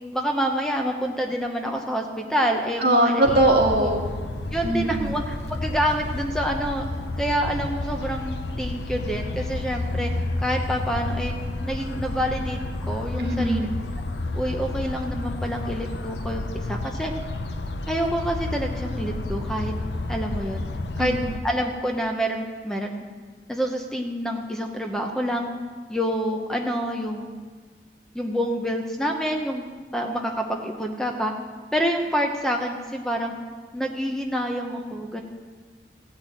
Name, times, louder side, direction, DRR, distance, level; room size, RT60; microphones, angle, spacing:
voice 1, 0.1-3.4 3.8-4.0 4.5-6.8 7.2-10.1 10.4-11.3 11.6-13.7 14.3-17.1 17.9-19.7 20.1-20.6 21.0-21.2 21.4-23.1 23.5-25.5 25.9-27.4 28.1-29.7 29.9-31.3 31.7-33.3 33.7-35.2, equal, 5° left, 2 dB, 0.8 m, -27 dB
voice 2, 2.8-4.1 4.6-5.1 13.2-13.7 21.0-21.4, right 1 dB, 60° right, -1 dB, 1.8 m, -21 dB
sound 1, 3.2-21.4, left 2 dB, 80° left, 0.8 m, -31 dB
15.0 x 6.1 x 8.9 m, 1.5 s
head